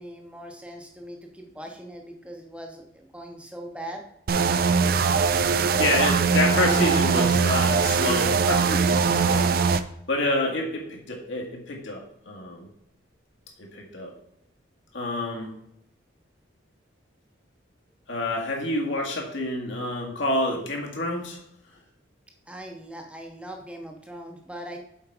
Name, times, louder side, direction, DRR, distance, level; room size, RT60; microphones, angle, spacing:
voice 1, 0.0-4.0 22.5-24.8, right 1 dB, 5° right, 2 dB, 0.7 m, -40 dB
sound 1, 4.3-9.8, right 5 dB, 50° right, 0.4 m, -21 dB
voice 2, 5.8-9.5 10.1-12.7 13.6-14.1 14.9-15.5 18.1-21.4, left 1 dB, 75° left, -1 dB, 1.9 m, -28 dB
7.1 x 4.5 x 4.8 m, 0.77 s
head